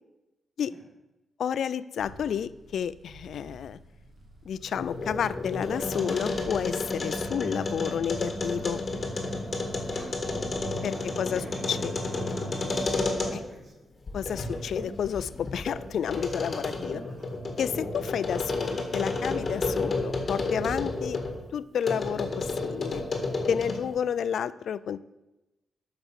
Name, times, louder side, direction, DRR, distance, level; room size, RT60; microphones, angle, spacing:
voice 1, 1.4-3.8 4.5-8.8 10.8-12.0 13.3-13.4 14.1-17.0 17.6-21.2 21.5-23.0 23.5-25.0, left 8 dB, 70° left, 16 dB, 0.4 m, -31 dB
sound 1, 2.0-10.9, equal, 40° right, 2.1 m, -50 dB
sound 2, 4.6-13.6 14.1-21.4 21.8-23.9, left 3 dB, 30° left, 1.8 m, -31 dB
sound 3, 7.2-12.8, equal, 10° right, 2.7 m, -42 dB
voice 2, 10.9-13.7 16.8-17.4, equal, 25° right, -1 dB, 2.1 m, -47 dB
8.3 x 5.9 x 7.4 m, 1.0 s
wide cardioid pair, 145°, 0 cm